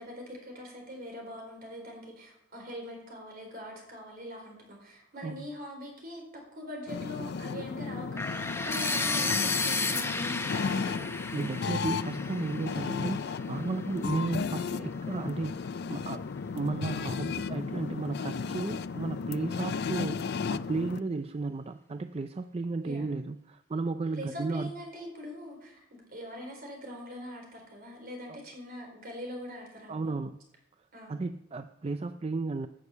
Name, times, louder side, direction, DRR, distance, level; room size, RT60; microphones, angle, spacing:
voice 1, 0.0-11.2 22.8-23.1 24.1-30.2 30.9-31.2, left 1 dB, 50° right, 1 dB, 4.2 m, -43 dB
sound 1, 6.9-21.0, left 5 dB, 55° left, 0.4 m, -34 dB
sound 2, 8.2-14.1, left 3 dB, 15° left, 0.7 m, -33 dB
voice 2, 11.3-16.2 16.5-24.7 29.9-30.4 31.1-32.7, right 3 dB, 30° right, 9 dB, 0.4 m, -34 dB
12.0 x 6.5 x 8.3 m, 0.82 s
head